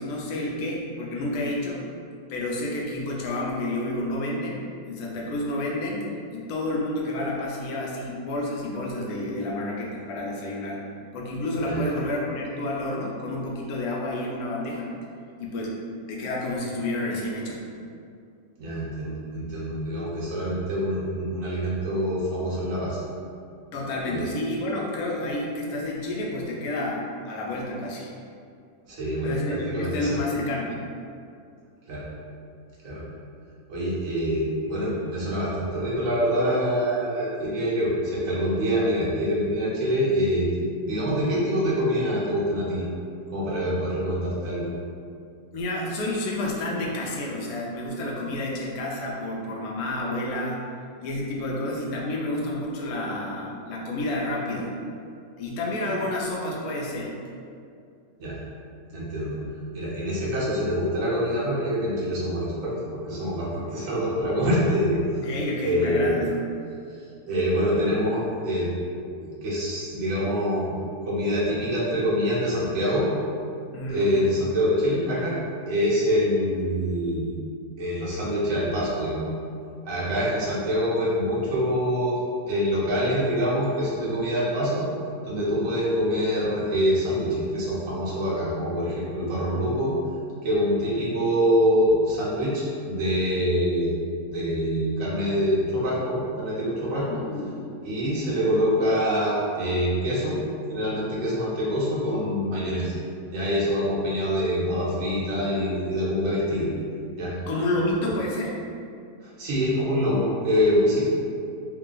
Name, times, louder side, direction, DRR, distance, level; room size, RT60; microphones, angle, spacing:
voice 1, 0.0-1.8 2.3-10.8 11.1-14.9 15.4-15.8 16.1-17.7 23.7-28.1 29.2-30.8 45.5-50.6 51.0-54.7 55.4-57.2 65.2-66.4 73.7-74.1 97.1-97.7 107.5-108.6, left 1 dB, 70° left, -3 dB, 1.1 m, -30 dB
voice 2, 18.6-23.0 24.1-24.3 28.9-30.1 31.9-32.0 32.8-33.0 33.7-42.8 43.3-44.7 58.2-58.3 58.9-59.4 59.7-65.0 65.6-66.1 67.3-68.7 69.2-70.7 71.0-73.1 73.9-75.3 75.7-77.3 77.8-79.3 79.8-82.2 82.5-84.8 85.2-89.9 90.4-93.9 94.2-97.2 97.8-100.3 100.7-102.9 103.3-106.7 107.2-107.3 109.2-111.0, equal, 55° right, -8 dB, 1.3 m, -25 dB
3.7 x 2.3 x 3.8 m, 2.4 s
omnidirectional pair, 1.8 m